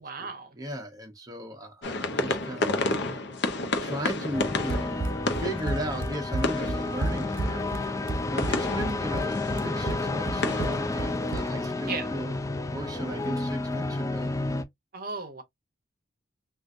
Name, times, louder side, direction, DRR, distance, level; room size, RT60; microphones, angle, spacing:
voice 1, 0.0-0.5 11.8-12.1 14.9-15.4, right 4 dB, 50° right, 0.8 m, -35 dB
voice 2, 0.6-3.2 3.8-5.0 5.4-14.3, equal, 20° right, 0.7 m, -37 dB
sound 1, 1.8-10.9, left 2 dB, 60° left, 0.7 m, -32 dB
sound 2, 4.3-14.6, left 2 dB, 15° left, 0.4 m, -31 dB
Run, 4.7-11.7, right 3 dB, 90° right, 0.6 m, -33 dB
3.7 x 2.4 x 2.5 m
head